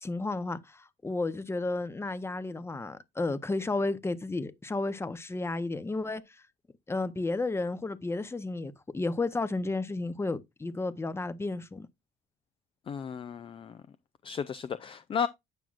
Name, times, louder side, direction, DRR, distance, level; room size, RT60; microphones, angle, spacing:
voice 1, 0.0-6.2 6.9-11.9, left 2 dB, 15° left, 0.8 m, -32 dB
voice 2, 12.9-13.8 14.2-15.3, left 7 dB, 30° left, 0.4 m, -34 dB
9.0 x 6.0 x 2.5 m
cardioid pair, 110°, 17 cm